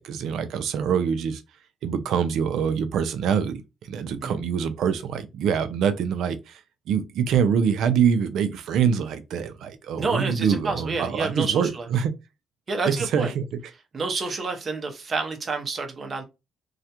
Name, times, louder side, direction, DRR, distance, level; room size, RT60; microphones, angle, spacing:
voice 1, 0.0-1.4 1.8-6.6 6.9-12.1 12.8-13.5 14.2-14.4, right 7 dB, 80° right, 0.4 m, -25 dB
voice 2, 10.0-11.9 12.7-13.3 13.9-16.2, right 4 dB, 45° right, 0.7 m, -29 dB
2.4 x 2.1 x 2.8 m
cardioid pair, 90°, 0 cm